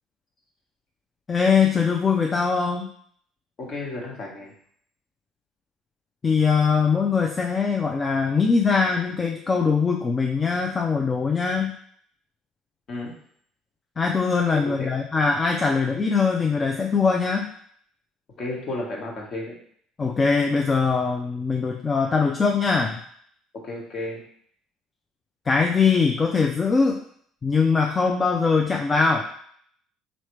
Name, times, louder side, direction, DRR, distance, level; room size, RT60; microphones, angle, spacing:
voice 1, 1.3-2.9 6.2-11.7 14.0-17.5 20.0-23.0 25.5-27.0 27.4-29.2, left 5 dB, 30° left, 1 dB, 0.4 m, -22 dB
voice 2, 3.6-4.5 12.9-13.1 14.5-14.9 18.4-19.5 23.5-24.2, left 2 dB, 50° left, -1 dB, 1.4 m, -32 dB
4.0 x 3.1 x 3.2 m, 0.62 s
hypercardioid pair, 70°, 0 cm